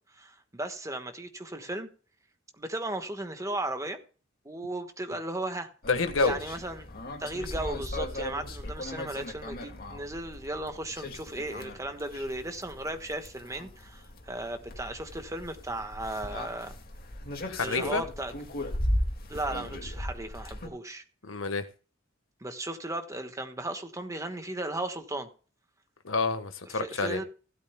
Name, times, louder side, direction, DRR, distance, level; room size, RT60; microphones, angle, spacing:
voice 1, 0.1-1.9 2.6-4.0 4.4-5.7 6.2-6.9 7.2-16.8 17.6-18.3 19.3-21.0 22.4-25.3 26.7-27.2, right 1 dB, 15° right, 1.3 m, -36 dB
sound 1, 5.8-20.7, left 1 dB, 50° left, 2.0 m, -37 dB
voice 2, 5.9-6.4 17.4-18.0 21.2-21.7 26.0-27.2, left 4 dB, 75° left, 1.3 m, -28 dB
16.5 x 12.5 x 2.2 m
head